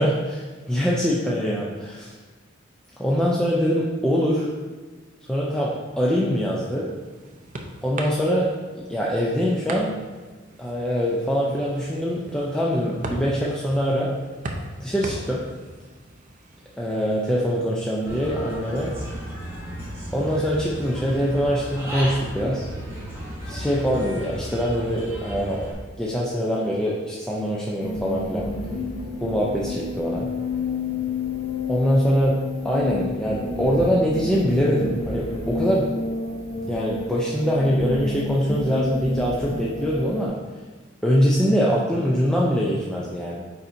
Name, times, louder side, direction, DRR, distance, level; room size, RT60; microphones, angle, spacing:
voice 1, 0.0-2.1 3.0-4.5 5.3-5.7 6.0-6.9 7.8-8.5 8.7-10.0 10.6-14.1 14.8-15.4 16.8-18.9 20.1-22.7 23.5-25.6 26.0-28.5 29.2-30.3 31.7-32.4 32.6-35.9 36.7-40.3 41.0-43.4, equal, 5° left, -5 dB, 0.6 m, -23 dB
sound 1, 6.8-17.6, right 2 dB, 40° right, 0.6 m, -39 dB
Human voice / Bird, 18.1-25.7, equal, 15° right, 1.7 m, -34 dB
sound 2, 27.8-40.3, left 3 dB, 70° left, 1.4 m, -30 dB
9.3 x 4.2 x 2.7 m, 1.4 s
head